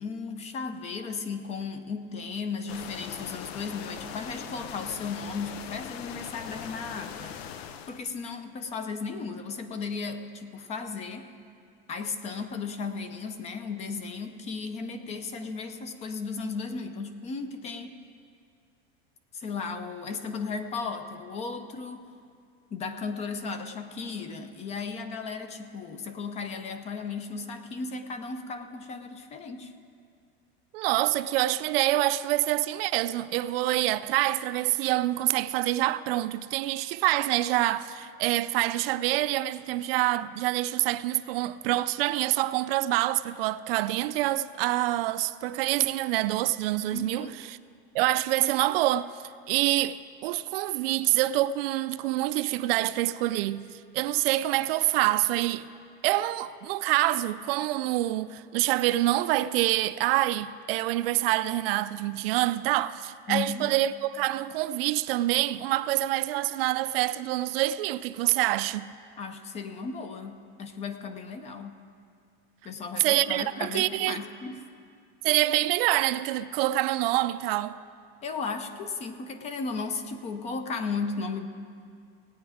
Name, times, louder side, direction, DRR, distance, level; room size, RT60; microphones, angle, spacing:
voice 1, 0.0-7.4 7.9-11.3 11.9-18.0 19.3-22.1 22.7-29.7 46.9-47.4 63.3-63.7 69.2-71.8 72.6-74.6 78.2-81.5, left 4 dB, 20° left, 0.5 m, -35 dB
sound 1, 2.7-8.0, left 9 dB, 85° left, 0.7 m, -40 dB
voice 2, 30.7-47.6 47.9-49.1 49.5-55.7 56.0-68.9 73.0-74.2 75.2-77.8, right 16 dB, 70° right, 0.5 m, -26 dB
17.5 x 8.8 x 4.9 m
supercardioid pair, 160°, 31 cm